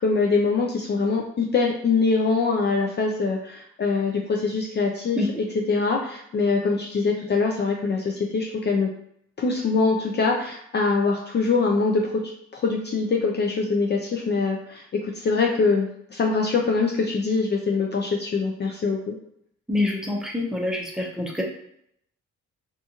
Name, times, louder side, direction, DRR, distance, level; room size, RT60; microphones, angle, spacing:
voice 1, 0.0-5.3 5.7-8.9 9.4-12.1 12.5-19.1, left 4 dB, 35° left, 0 dB, 0.4 m, -23 dB
voice 2, 19.7-21.4, left 2 dB, ahead, -1 dB, 0.6 m, -26 dB
2.5 x 2.4 x 2.8 m, 0.71 s
cardioid pair, 90°, 30 cm